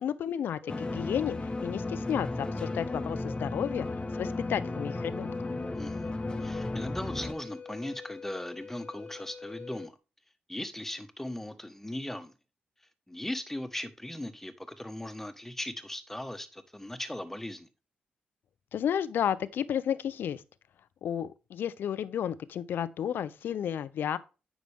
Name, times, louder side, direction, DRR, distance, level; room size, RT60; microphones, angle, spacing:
voice 1, 0.0-3.9 4.1-5.5 18.7-20.4 21.0-24.2, left 9 dB, 75° left, 0.6 m, -32 dB
Wind instrument woodwind instrument, 0.6-9.9, left 5 dB, 45° left, 0.9 m, -45 dB
sound 1, 0.7-7.3, left 2 dB, 25° left, 1.2 m, -35 dB
voice 2, 5.7-6.1 6.4-9.9 10.5-12.3 13.1-17.7, left 1 dB, 10° left, 1.5 m, -38 dB
9.4 x 6.1 x 3.6 m
supercardioid pair, 55°, 4 cm